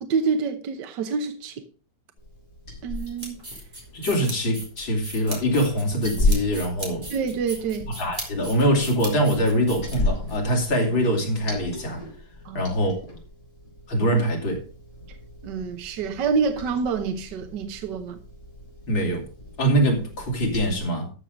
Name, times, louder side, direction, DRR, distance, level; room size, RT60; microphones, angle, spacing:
voice 1, 0.0-1.6 2.8-3.4 7.1-7.9 12.4-12.7 15.4-18.2, right 5 dB, 65° right, 1.6 m, -27 dB
Liquid, 2.2-20.8, left 2 dB, 40° left, 4.3 m, -34 dB
sound 1, 2.9-10.4, right 1 dB, 20° right, 3.7 m, -38 dB
voice 2, 3.9-7.1 7.9-12.1 12.5-13.0 13.9-14.6 18.9-19.3 19.6-21.1, equal, 85° left, 3.8 m, -23 dB
13.0 x 6.5 x 5.2 m
omnidirectional pair, 2.1 m